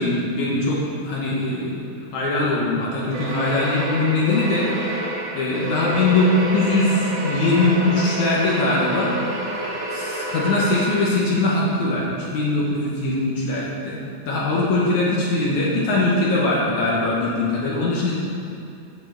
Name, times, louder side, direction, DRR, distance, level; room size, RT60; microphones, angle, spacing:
voice 1, 0.0-1.9 2.1-4.7 5.3-9.1 9.9-14.0 14.3-18.2, left 2 dB, 70° left, -5 dB, 1.8 m, -21 dB
sound 1, 3.1-11.4, right 1 dB, 60° right, 2.3 m, -29 dB
9.1 x 5.6 x 7.8 m, 2.5 s
omnidirectional pair, 5.0 m